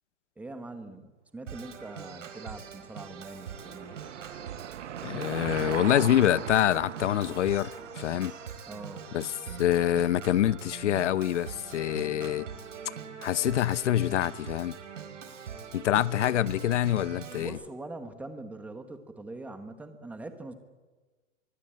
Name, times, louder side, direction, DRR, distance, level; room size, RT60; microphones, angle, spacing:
voice 1, 0.4-4.0 8.7-9.0 15.9-16.7 17.4-20.5, right 2 dB, 5° right, 1.3 m, -43 dB
Organ, 1.5-17.5, right 7 dB, 90° right, 5.3 m, -43 dB
Car passing by / Engine, 2.4-9.3, right 11 dB, 70° right, 1.1 m, -40 dB
voice 2, 5.0-8.3 9.1-9.3 9.6-12.5 13.2-14.8 15.7-17.6, left 12 dB, 70° left, 0.9 m, -26 dB
24.5 x 23.5 x 8.9 m
hypercardioid pair, 170°, 36 cm